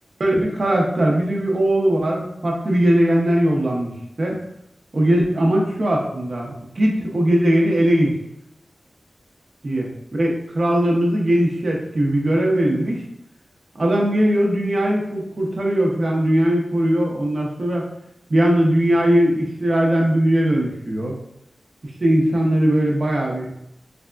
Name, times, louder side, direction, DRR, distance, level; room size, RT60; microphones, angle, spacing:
voice 1, 0.2-4.4 4.9-8.1 9.6-13.0 13.7-17.9 18.3-21.2 22.0-23.5, right 1 dB, 55° right, -1 dB, 0.9 m, -19 dB
3.4 x 3.4 x 2.5 m, 0.79 s
wide cardioid pair, 75°, 0 cm